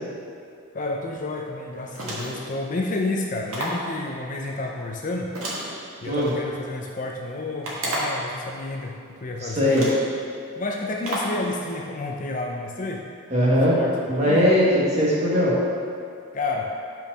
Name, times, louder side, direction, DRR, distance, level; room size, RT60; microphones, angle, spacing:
voice 1, 0.7-5.3 6.0-9.9 10.6-13.0 13.4-14.5 16.3-16.7, left 2 dB, 35° left, 1 dB, 0.4 m, -30 dB
sound 1, 1.9-2.5 3.5-3.9 5.3-6.3 7.6-8.3 9.2-9.3 9.7-10.1 11.0-11.4, right 1 dB, 80° right, 1.5 m, -31 dB
voice 2, 9.4-9.9 13.3-13.8 14.1-15.5, equal, 30° right, -7 dB, 1.6 m, -20 dB
5.4 x 4.6 x 6.1 m, 2.4 s
head